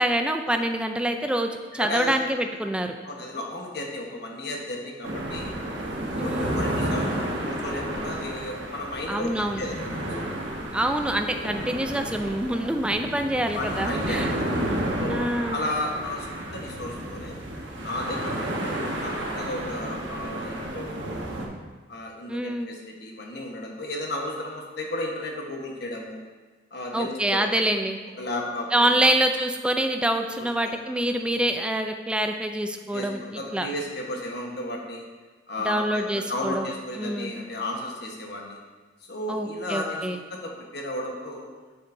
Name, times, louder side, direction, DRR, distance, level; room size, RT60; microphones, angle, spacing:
voice 1, 0.0-3.0 6.2-6.6 9.1-9.6 10.7-14.3 15.1-15.7 22.3-22.7 26.9-28.0 28.7-33.7 35.6-36.7 37.0-37.3 39.3-40.2, right 1 dB, 5° right, 5 dB, 0.3 m, -26 dB
voice 2, 1.8-2.1 3.0-5.5 6.2-10.0 13.5-14.5 15.0-17.3 17.8-21.4 21.9-26.2 26.7-27.6 28.2-28.9 30.4-30.8 32.9-35.1 35.5-38.6 39.1-41.5, left 1 dB, 65° left, 0 dB, 1.2 m, -34 dB
sound 1, 5.0-21.5, right 1 dB, 85° right, 1.1 m, -31 dB
7.5 x 6.9 x 2.6 m, 1.3 s
head